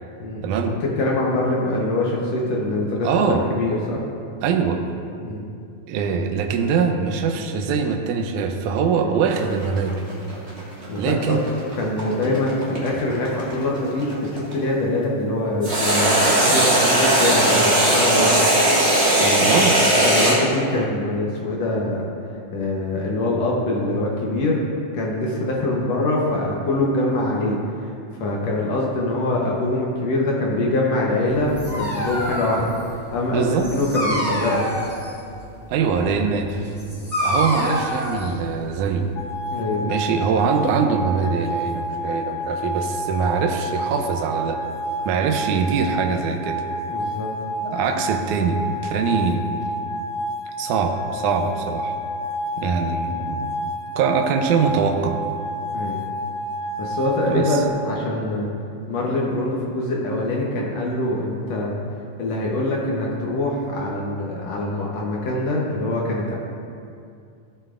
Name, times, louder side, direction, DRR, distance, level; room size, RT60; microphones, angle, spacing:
voice 1, 0.4-0.7 3.0-3.4 4.4-4.8 5.9-10.0 11.0-11.4 19.4-19.7 33.3-33.7 35.7-36.6 37.2-39.1 39.8-44.6 45.1-46.6 47.6-49.4 50.6-51.9 52.6-53.5 54.0-55.2 57.3-57.6, right 6 dB, 80° right, 4 dB, 1.8 m, -23 dB
voice 2, 1.0-4.0 5.2-5.4 9.0-9.1 10.9-11.4 11.8-18.5 18.8-18.9 19.2-19.6 20.0-22.0 22.5-24.6 24.9-27.6 28.2-34.7 39.5-40.2 46.9-47.3 55.7-56.0 56.8-58.5 58.9-61.8 62.2-66.4, left 2 dB, 70° left, -3 dB, 1.6 m, -24 dB
sound 1, 9.3-14.5 15.6-20.4, right 1 dB, 45° right, 0.8 m, -18 dB
Dog, 31.3-39.1, equal, 5° right, 1.2 m, -28 dB
sound 2, 39.2-57.7, equal, 85° left, 1.6 m, -29 dB
14.5 x 7.5 x 2.5 m, 2.4 s
omnidirectional pair, 4.2 m